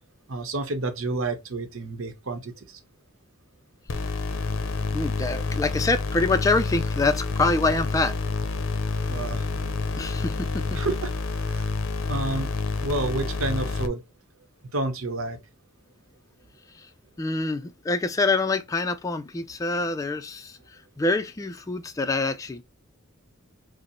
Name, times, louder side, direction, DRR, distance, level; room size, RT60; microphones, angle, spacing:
voice 1, 0.3-2.8 9.1-9.5 10.7-11.1 11.4-11.7 12.1-12.5 12.8-14.0 14.7-15.4, right 2 dB, 85° right, 0.9 m, -30 dB
sound 1, 3.9-13.9, left 3 dB, 75° left, 0.6 m, -28 dB
voice 2, 4.9-8.1 10.0-10.7 16.8-16.9 17.2-20.6 21.0-22.6, left 3 dB, 15° left, 0.3 m, -25 dB
5.0 x 2.0 x 3.0 m
head